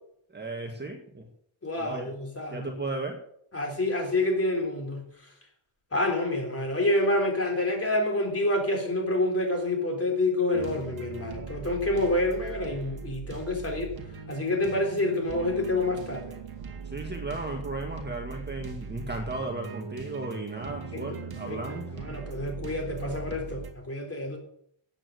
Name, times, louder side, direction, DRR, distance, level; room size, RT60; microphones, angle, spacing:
voice 1, 0.3-1.2 1.8-2.1 2.5-3.2 16.9-21.9, right 2 dB, 20° right, 1.9 m, -35 dB
voice 2, 1.6-2.6 3.5-5.1 5.9-13.9 14.3-16.3 20.9-21.0 21.4-24.4, left 1 dB, 30° left, 3.9 m, -28 dB
sound 1, 10.5-23.7, right 6 dB, 45° right, 2.3 m, -40 dB
13.5 x 9.1 x 6.4 m
wide cardioid pair, 140°, 49 cm